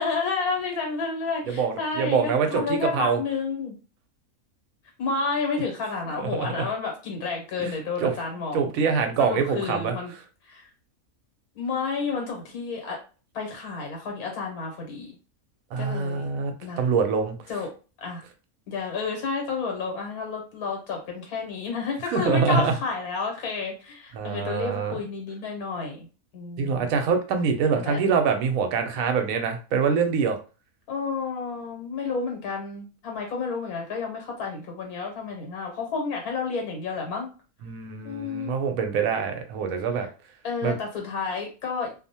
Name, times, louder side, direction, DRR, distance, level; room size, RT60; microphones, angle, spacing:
voice 1, 0.0-3.7 5.0-8.7 9.2-10.1 10.4-10.6 11.5-13.0 13.3-15.1 15.8-16.8 17.5-17.7 18.0-18.2 18.7-26.1 26.3-26.9 27.7-28.0 30.9-37.3 38.0-38.6 40.4-41.9, left 4 dB, 90° left, 2 dB, 1.3 m, -30 dB
voice 2, 1.6-3.2 6.2-6.6 7.6-7.7 8.0-8.1 8.5-9.9 15.7-17.4 22.1-22.7 24.2-24.9 26.6-30.4 37.6-40.1 40.6-40.8, right 5 dB, 75° right, 6 dB, 1.0 m, -25 dB
2.6 x 2.1 x 2.7 m, 0.34 s
omnidirectional pair, 1.5 m